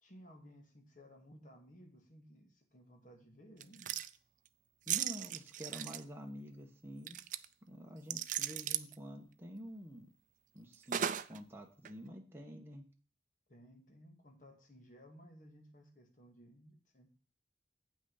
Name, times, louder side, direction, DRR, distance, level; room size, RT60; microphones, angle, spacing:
voice 1, 0.0-4.0 13.5-17.2, equal, 45° left, 3 dB, 2.0 m, -58 dB
sound 1, 3.6-4.1 4.9-6.0 7.1-7.4 8.1-8.9 10.9-11.4 11.8-11.9, right 10 dB, 45° right, 0.4 m, -36 dB
voice 2, 4.9-7.2 7.7-10.1 10.5-12.8, equal, 15° right, 1 dB, 1.1 m, -48 dB
8.5 x 6.0 x 5.6 m, 0.41 s
head